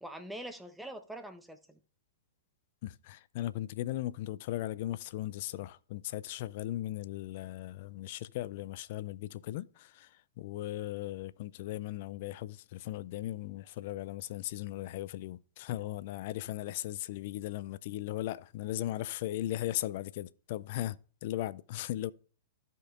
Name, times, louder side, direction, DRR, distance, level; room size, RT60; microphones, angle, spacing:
voice 1, 0.0-1.8, right 1 dB, 5° right, 0.8 m, -44 dB
voice 2, 2.8-22.1, left 14 dB, 50° left, 0.3 m, -37 dB
14.0 x 5.3 x 2.4 m
figure-of-eight pair, 110°, 0 cm